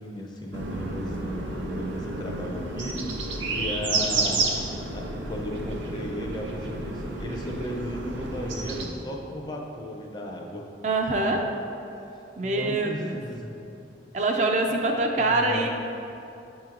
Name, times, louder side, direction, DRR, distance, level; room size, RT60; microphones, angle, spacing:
voice 1, 0.0-3.2 3.5-4.5 4.9-10.7 12.1-13.6 15.2-15.7, equal, 25° left, 0 dB, 0.5 m, -35 dB
sound 1, 0.5-8.9, right 3 dB, 85° right, 0.7 m, -31 dB
voice 2, 10.8-11.4 12.4-13.2 14.1-15.7, right 2 dB, 40° right, 2 dB, 0.4 m, -24 dB
8.7 x 2.9 x 3.8 m, 2.8 s
head